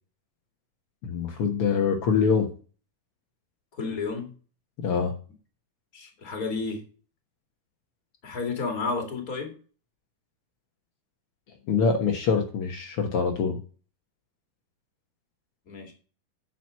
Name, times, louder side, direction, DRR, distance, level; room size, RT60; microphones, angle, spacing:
voice 1, 1.0-2.5 4.8-5.1 11.7-13.6, left 5 dB, 75° left, 2 dB, 1.3 m, -24 dB
voice 2, 3.7-4.3 5.9-6.8 8.2-9.6 15.7-15.9, left 4 dB, 25° left, 3 dB, 2.2 m, -31 dB
9.2 x 6.0 x 6.3 m, 0.38 s
omnidirectional pair, 4.3 m